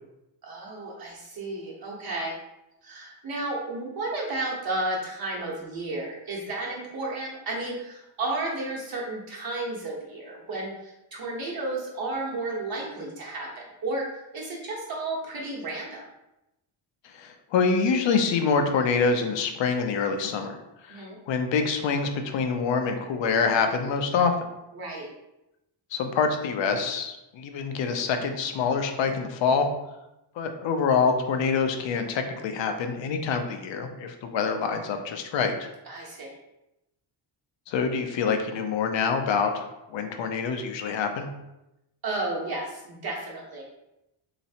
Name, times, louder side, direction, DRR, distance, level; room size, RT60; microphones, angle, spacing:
voice 1, 0.4-2.4 2.8-14.1 14.3-16.0 20.9-21.2 24.7-25.1 35.9-36.3 42.0-43.6, right 2 dB, 50° right, -3 dB, 1.2 m, -32 dB
voice 2, 17.0-20.6 20.8-24.3 25.9-29.7 30.4-35.7 37.7-41.3, left 5 dB, 70° left, 6 dB, 0.6 m, -26 dB
3.2 x 3.0 x 2.8 m, 0.92 s
cardioid pair, 100°, 46 cm